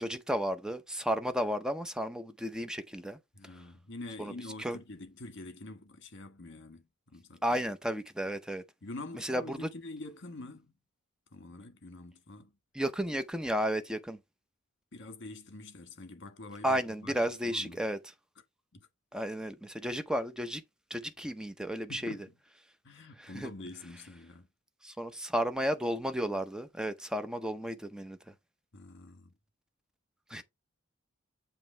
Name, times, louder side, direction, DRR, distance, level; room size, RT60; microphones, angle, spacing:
voice 1, 0.0-3.2 4.2-4.3 4.6-4.8 7.4-8.6 9.1-9.7 12.7-14.2 16.6-18.0 19.1-20.6 20.9-22.2 23.2-23.5 24.8-28.2 30.3-30.4, equal, 5° right, 0.6 m, -33 dB
voice 2, 3.3-7.6 8.8-10.7 11.3-12.5 14.9-17.9 18.7-18.9 21.9-22.2 22.8-24.5 28.7-29.3 30.3-30.4, left 2 dB, 60° left, 1.4 m, -46 dB
7.4 x 3.0 x 4.3 m
head